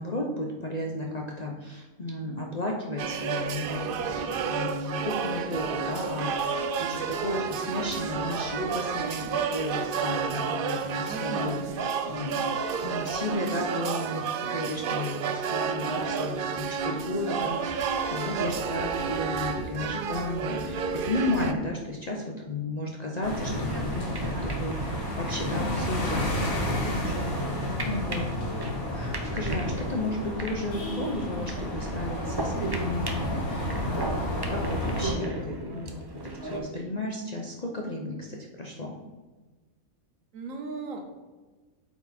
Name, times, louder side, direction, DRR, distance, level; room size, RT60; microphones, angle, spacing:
voice 1, 0.0-12.5 12.8-26.6 27.8-28.3 28.9-38.9, left 1 dB, 40° left, -1 dB, 0.6 m, -33 dB
sound 1, 3.0-21.5, right 6 dB, 90° right, 0.4 m, -31 dB
voice 2, 11.1-11.8 26.8-27.7 40.3-41.0, right 3 dB, 70° right, 4 dB, 1.3 m, -38 dB
sound 2, 23.2-35.1, left 1 dB, 85° left, 2.0 m, -32 dB
sound 3, 23.3-36.6, right 1 dB, 30° right, 0.5 m, -36 dB
8.2 x 4.5 x 4.3 m, 1.3 s
omnidirectional pair, 1.5 m